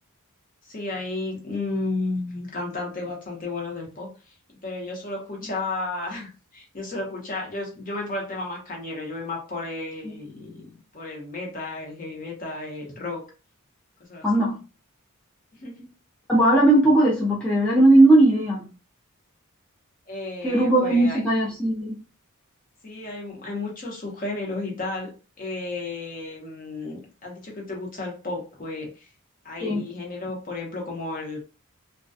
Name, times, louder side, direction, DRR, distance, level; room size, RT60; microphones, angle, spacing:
voice 1, 0.6-4.3 4.6-13.3 14.1-14.3 15.6-15.9 20.1-21.2 22.8-25.1 25.4-29.1 29.4-31.4, left 2 dB, 40° left, 0.8 m, -33 dB
voice 2, 14.2-14.6 16.3-18.7 20.4-22.0 29.6-29.8, right 1 dB, 5° left, 0.4 m, -18 dB
2.3 x 2.2 x 2.5 m
head